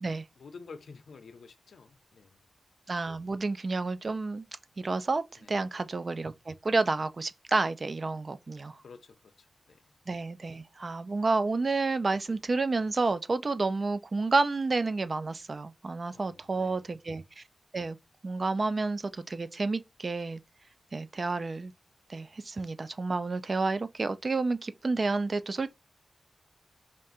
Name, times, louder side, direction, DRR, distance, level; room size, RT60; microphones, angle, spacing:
voice 1, 0.4-2.4 5.4-5.6 8.8-9.8 16.1-16.9, left 4 dB, 75° left, 0.7 m, -50 dB
voice 2, 2.9-4.5 4.8-8.8 10.1-17.4 17.7-18.0 18.2-20.4 20.9-21.7 22.1-25.7, right 3 dB, 35° right, 0.4 m, -30 dB
3.6 x 2.5 x 4.1 m
wide cardioid pair, 155°, 0 cm